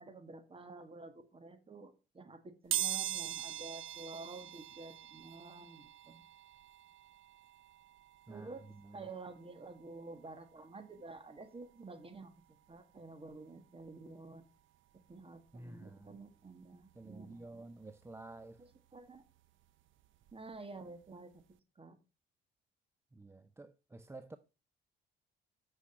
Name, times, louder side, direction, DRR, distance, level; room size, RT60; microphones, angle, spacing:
voice 1, 0.0-6.2 8.3-8.6 8.9-14.5 15.1-17.7 18.6-19.2 20.3-21.4 21.8-22.0, right 3 dB, 30° right, 1.8 m, -50 dB
sound 1, 2.7-13.4 13.8-13.9 15.1-15.2 15.5-17.6 17.9-20.6 20.9-21.1 21.4-21.5, right 12 dB, 75° right, 0.7 m, -44 dB
voice 2, 8.3-9.1 15.5-16.2 16.9-18.7 23.1-24.4, right 2 dB, 15° right, 0.5 m, -51 dB
8.4 x 6.3 x 4.5 m
cardioid pair, 90°, 20 cm